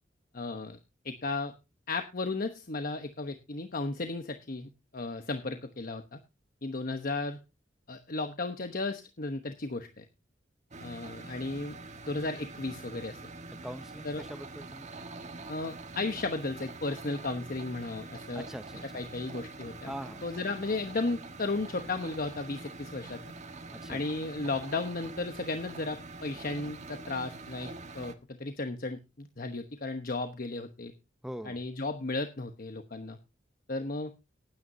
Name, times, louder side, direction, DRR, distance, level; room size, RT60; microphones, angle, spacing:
voice 1, 0.3-0.8 1.0-1.5 1.9-6.2 6.6-7.4 7.9-10.0 10.8-11.8 12.1-13.2 14.0-14.3 15.5-18.5 18.9-19.9 20.2-23.2 23.9-30.9 31.4-33.2 33.7-34.1, left 3 dB, 50° left, 7 dB, 1.1 m, -34 dB
sound 1, 10.7-28.1, right 3 dB, 40° right, 1.4 m, -45 dB
voice 2, 13.6-14.9 18.3-19.0 19.8-20.2 23.7-24.0 31.2-31.6, equal, 5° right, 11 dB, 0.7 m, -42 dB
18.5 x 9.4 x 2.7 m, 0.27 s
head